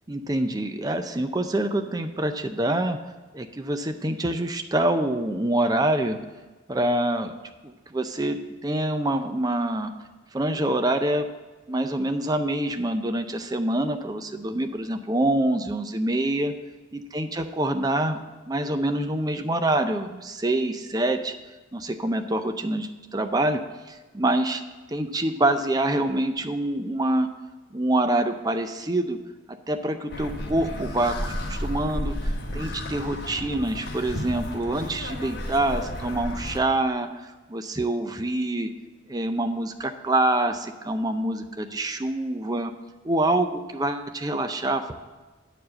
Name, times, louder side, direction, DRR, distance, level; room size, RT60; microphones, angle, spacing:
voice 1, 0.1-3.0 3.3-6.2 6.7-7.3 7.6-9.9 10.3-11.3 11.7-16.5 16.9-18.2 18.5-21.4 21.7-23.6 23.9-24.6 24.9-27.3 27.7-29.2 29.5-37.1 37.5-38.7 39.1-42.7 43.0-44.9, right 1 dB, 20° right, 7 dB, 0.5 m, -26 dB
sound 1, 30.1-36.6, left 1 dB, 55° left, 1.3 m, -32 dB
9.9 x 4.7 x 7.6 m, 1.2 s
head